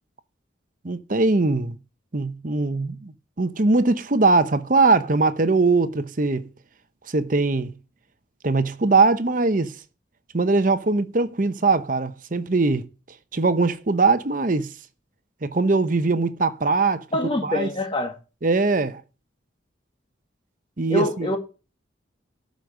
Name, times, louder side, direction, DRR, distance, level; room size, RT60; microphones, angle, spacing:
voice 1, 0.8-1.8 2.1-6.5 7.1-7.7 8.4-9.7 10.3-12.9 13.3-14.7 15.4-17.0 17.4-17.7 18.4-19.0 20.8-21.3, right 3 dB, 45° right, 0.8 m, -21 dB
voice 2, 17.1-18.1 20.9-21.4, left 1 dB, 25° left, 1.9 m, -25 dB
12.5 x 5.3 x 6.5 m
head